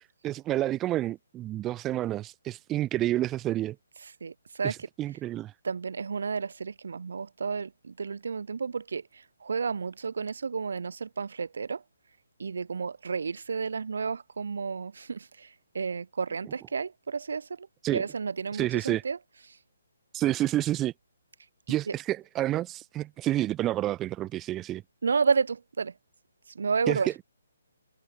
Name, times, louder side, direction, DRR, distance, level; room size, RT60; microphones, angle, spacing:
voice 1, 0.0-3.8 4.6-5.5 17.8-18.0 18.5-19.0 20.1-20.9 21.7-24.8 26.9-27.2, right 14 dB, 10° right, 0.9 m, -29 dB
voice 2, 4.2-4.7 5.6-11.8 12.4-17.7 17.9-19.2 25.0-25.9 26.5-27.2, right 5 dB, 70° right, 1.7 m, -31 dB
hypercardioid pair, 170°, 0 cm